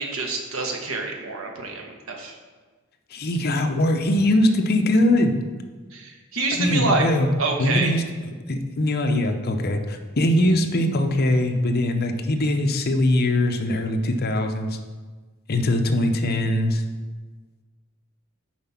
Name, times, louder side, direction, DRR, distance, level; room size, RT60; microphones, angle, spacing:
voice 1, 0.0-2.3 5.9-7.0 7.4-7.9, right 3 dB, 75° right, 2 dB, 1.2 m, -27 dB
voice 2, 3.1-5.4 6.6-7.3 7.6-8.0 8.5-14.8 15.5-16.8, left 1 dB, 50° left, 5 dB, 0.7 m, -21 dB
7.4 x 4.9 x 5.8 m, 1.4 s
head